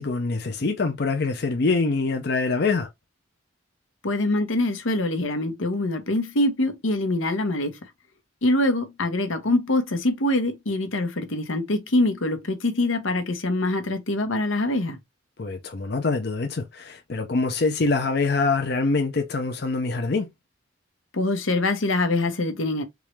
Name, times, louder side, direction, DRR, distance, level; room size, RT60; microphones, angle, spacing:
voice 1, 0.0-2.9 15.4-20.3, left 3 dB, 55° left, 0.6 m, -24 dB
voice 2, 4.0-7.8 8.4-15.0 21.1-22.8, left 2 dB, 85° left, 1.0 m, -24 dB
3.6 x 3.1 x 3.1 m
head